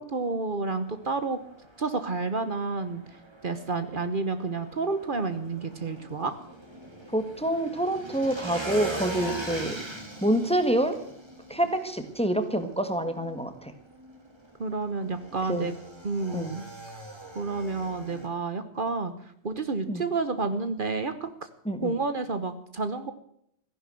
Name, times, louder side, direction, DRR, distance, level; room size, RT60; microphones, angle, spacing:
voice 1, 0.0-1.4 1.8-3.0 3.4-6.3 14.6-15.7 16.0-16.6 17.3-19.1 19.4-21.3 21.8-23.1, right 3 dB, 55° right, 10 dB, 1.3 m, -30 dB
Motorcycle / Engine, 0.8-18.3, right 2 dB, 25° right, 2.7 m, -41 dB
voice 2, 7.1-9.8 10.2-10.9 11.5-13.7 15.5-15.7 16.3-16.5 19.9-20.0 21.6-22.0, right 1 dB, 5° left, 8 dB, 1.6 m, -27 dB
15.0 x 11.0 x 7.8 m, 0.68 s
omnidirectional pair, 1.1 m